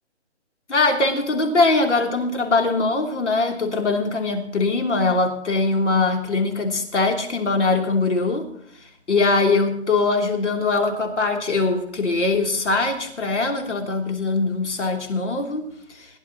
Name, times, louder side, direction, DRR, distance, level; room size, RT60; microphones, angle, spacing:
voice 1, 0.7-8.5 9.1-16.1, left 3 dB, 80° left, 3 dB, 3.3 m, -22 dB
21.5 x 11.0 x 3.0 m, 0.71 s
hypercardioid pair, 175°, 35 cm